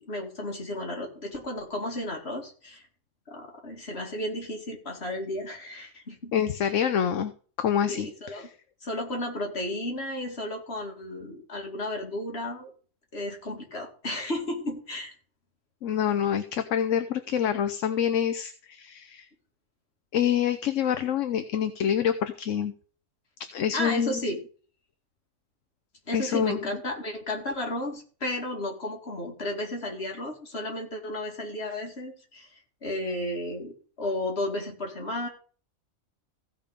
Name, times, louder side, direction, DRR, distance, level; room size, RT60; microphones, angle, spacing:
voice 1, 0.0-2.8 3.3-6.3 7.9-8.5 8.8-12.7 13.1-15.1 23.7-24.4 26.1-32.5 32.8-35.3, left 1 dB, 50° left, 1 dB, 2.6 m, -33 dB
voice 2, 6.3-7.3 7.6-8.5 15.8-19.3 20.1-22.7 23.5-24.2 26.1-26.8, left 9 dB, 65° left, 9 dB, 1.1 m, -26 dB
15.5 x 5.3 x 5.1 m, 0.41 s
omnidirectional pair, 1.4 m